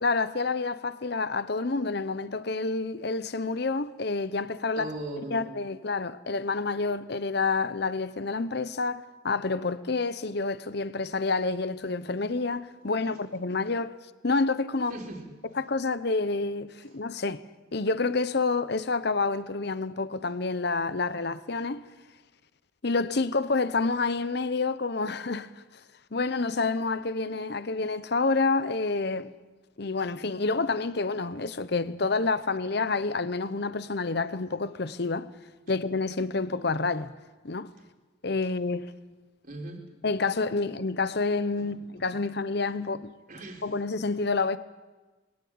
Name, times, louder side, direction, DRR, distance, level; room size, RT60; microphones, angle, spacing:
voice 1, 0.0-4.9 5.3-13.9 14.2-15.0 15.5-17.4 17.7-21.9 22.8-25.5 26.1-29.3 29.8-35.3 35.7-37.1 37.4-37.7 38.2-38.9 40.0-43.1 43.6-44.6, left 3 dB, 55° left, 0.8 m, -28 dB
voice 2, 4.8-5.6 14.9-15.3 39.4-39.8 41.6-41.8 43.3-43.6, right 1 dB, 45° right, 3.7 m, -38 dB
22.5 x 16.5 x 8.7 m
head